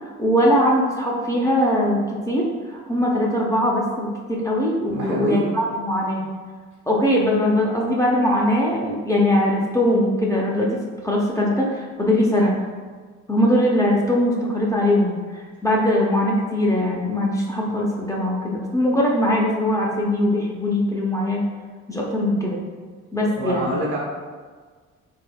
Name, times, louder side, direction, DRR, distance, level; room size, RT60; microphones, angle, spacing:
voice 1, 0.0-2.0 2.3-6.2 6.9-10.7 11.0-12.5 13.3-21.4 21.9-22.6 23.1-23.8, left 1 dB, 10° left, -3 dB, 0.5 m, -21 dB
voice 2, 4.9-5.4 23.4-24.0, right 1 dB, 75° right, -3 dB, 1.1 m, -25 dB
3.4 x 3.2 x 2.2 m, 1.5 s
cardioid pair, 90°, 30 cm